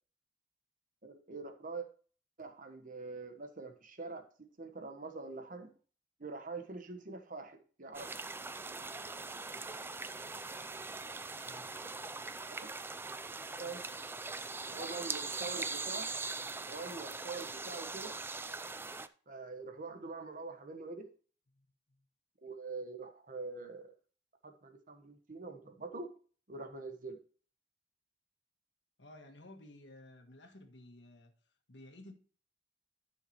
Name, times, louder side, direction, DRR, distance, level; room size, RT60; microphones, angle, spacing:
voice 1, 1.0-1.9 2.4-4.2 4.6-5.7 6.2-8.2 12.6-12.7 13.6-13.8 14.6-16.1 16.7-18.1 19.3-21.1 22.4-23.9 24.4-26.1 26.5-27.2, right 3 dB, 50° right, 1.2 m, -44 dB
sound 1, 7.9-19.1, right 3 dB, 15° right, 0.4 m, -41 dB
voice 2, 11.4-11.8 21.5-22.0 29.0-32.1, left 1 dB, 80° left, 1.6 m, -55 dB
13.0 x 5.7 x 3.0 m
head